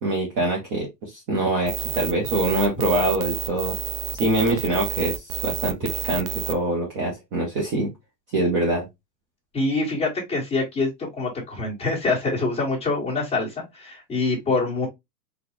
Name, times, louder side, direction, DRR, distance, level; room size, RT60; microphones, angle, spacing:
voice 1, 0.0-3.8 4.1-5.2 5.4-7.9 8.3-8.9, right 2 dB, 25° right, 0.6 m, -24 dB
sound 1, 1.7-6.5, right 11 dB, 65° right, 0.7 m, -30 dB
voice 2, 9.5-14.9, left 3 dB, 10° left, 1.6 m, -25 dB
3.9 x 2.3 x 2.9 m
supercardioid pair, 160°, 50 cm